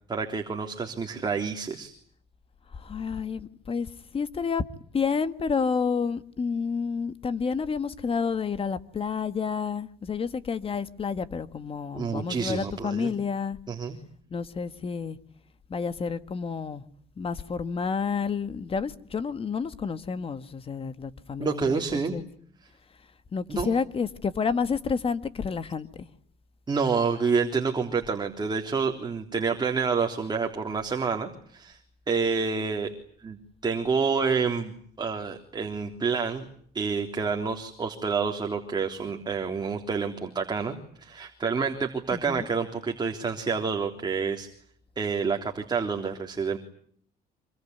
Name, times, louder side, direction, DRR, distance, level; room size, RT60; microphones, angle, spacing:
voice 1, 0.1-1.9 11.9-13.1 13.7-14.0 21.4-22.2 23.5-23.7 26.7-31.8 32.1-32.9 33.2-33.4 33.6-36.4 36.7-44.5 45.0-46.6, right 5 dB, 25° right, 3.5 m, -28 dB
voice 2, 2.7-4.6 4.9-13.6 14.3-15.2 15.7-16.8 17.2-22.2 23.3-26.1 42.1-42.5, left 5 dB, 35° left, 1.8 m, -30 dB
26.5 x 23.5 x 9.5 m
cardioid pair, 110°, 17 cm